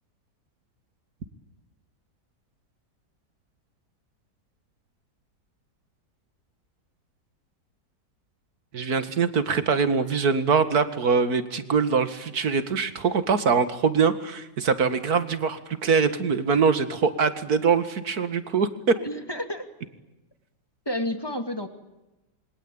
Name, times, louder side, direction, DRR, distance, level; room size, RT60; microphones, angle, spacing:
voice 1, 8.7-18.7, right 5 dB, 60° right, 11 dB, 2.3 m, -23 dB
voice 2, 18.9-19.7 20.9-21.7, left 1 dB, 15° left, 6 dB, 2.7 m, -30 dB
27.5 x 24.0 x 8.8 m, 0.99 s
omnidirectional pair, 1.9 m